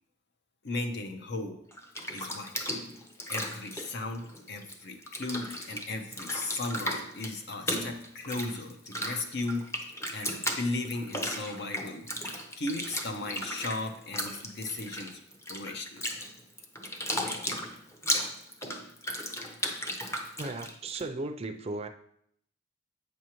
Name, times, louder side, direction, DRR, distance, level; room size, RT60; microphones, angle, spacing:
voice 1, 0.6-1.6 2.1-2.7 3.3-9.7 10.1-12.1 12.6-15.2 15.5-16.0, left 2 dB, 60° left, 6 dB, 0.8 m, -36 dB
Bathtub (filling or washing), 1.7-4.8 5.0-21.0, equal, 15° left, 0.7 m, -36 dB
voice 2, 20.4-21.9, right 2 dB, 30° right, 7 dB, 0.4 m, -36 dB
8.3 x 6.2 x 3.0 m, 0.69 s
head